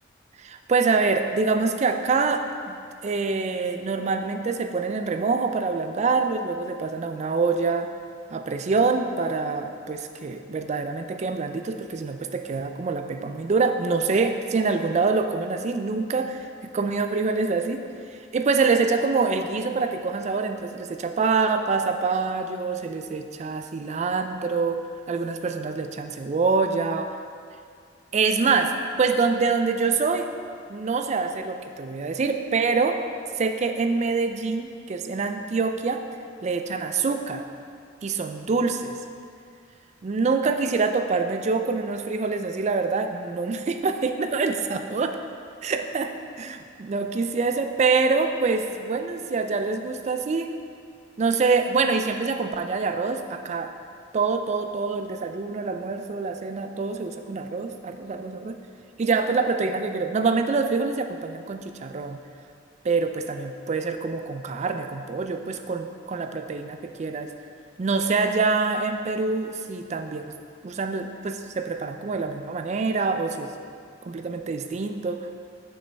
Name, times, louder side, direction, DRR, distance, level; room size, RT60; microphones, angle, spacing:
voice 1, 0.4-7.9 8.3-17.8 18.1-27.2 28.1-28.7 29.0-30.3 30.7-33.0 33.4-36.0 36.4-37.5 38.0-39.0 40.0-45.2 45.6-46.1 46.4-50.5 51.2-53.7 54.1-58.6 59.0-62.2 62.8-67.3 67.8-70.3 70.6-73.5 74.0-75.3, right 4 dB, 35° right, 7 dB, 0.3 m, -25 dB
6.6 x 6.3 x 3.4 m, 2.2 s
head